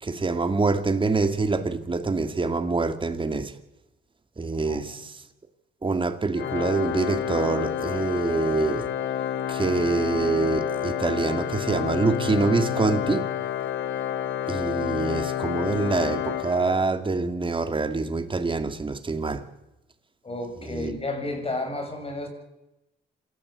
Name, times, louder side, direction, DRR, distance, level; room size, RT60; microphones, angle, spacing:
voice 1, 0.0-3.5 4.4-5.1 5.8-8.9 9.5-13.3 14.5-19.4 20.7-21.0, right 3 dB, 25° right, 2.6 m, -25 dB
voice 2, 4.7-5.0 20.2-22.3, left 2 dB, 30° left, 7.3 m, -32 dB
Organ, 6.4-17.2, left 10 dB, 65° left, 1.6 m, -29 dB
27.5 x 14.0 x 8.4 m
cardioid pair, 90°, 20 cm